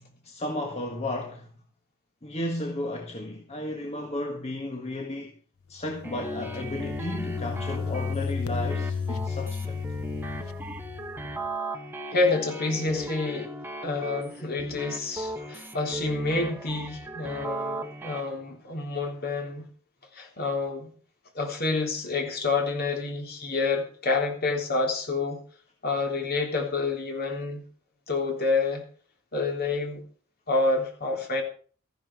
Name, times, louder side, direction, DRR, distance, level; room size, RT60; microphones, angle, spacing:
voice 1, 0.0-1.5 2.2-5.3 5.7-9.8 15.3-15.5, left 1 dB, 30° left, 1.7 m, -34 dB
sound 1, 5.8-11.5, left 5 dB, 85° left, 0.9 m, -33 dB
sound 2, 6.0-18.2, right 1 dB, 10° right, 1.4 m, -37 dB
voice 2, 12.1-13.5 13.8-19.7 20.1-20.9 21.4-25.4 25.8-27.6 28.1-28.8 29.3-30.0 30.5-31.4, left 3 dB, 50° left, 3.5 m, -28 dB
14.5 x 11.0 x 4.7 m
head